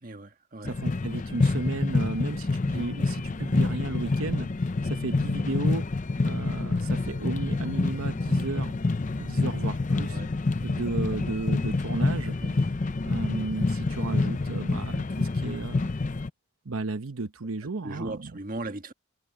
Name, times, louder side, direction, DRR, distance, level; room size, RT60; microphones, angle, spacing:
voice 1, 0.0-0.8 10.1-10.3 10.7-10.8 12.4-12.7 17.8-18.9, right 2 dB, 40° right, 1.5 m, -38 dB
sound 1, 0.6-16.3, left 3 dB, 35° left, 0.5 m, -27 dB
voice 2, 0.7-4.5 4.8-5.8 6.2-8.8 9.2-10.2 10.6-12.4 13.0-15.9 16.6-18.3, right 3 dB, 85° right, 0.9 m, -34 dB
head